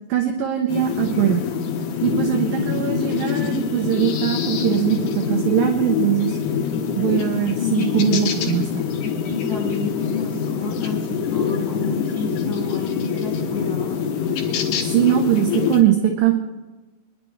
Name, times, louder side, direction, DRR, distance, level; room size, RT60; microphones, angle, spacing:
voice 1, 0.1-1.4 2.0-6.4 7.0-8.8 14.8-16.3, right 11 dB, 70° right, 3 dB, 2.4 m, -21 dB
sound 1, 0.7-15.8, left 7 dB, 80° left, 3.6 m, -25 dB
voice 2, 2.4-2.9 7.6-8.5 8.9-14.0, left 4 dB, 5° right, -5 dB, 5.8 m, -29 dB
24.5 x 11.0 x 3.3 m, 1.2 s
omnidirectional pair, 4.9 m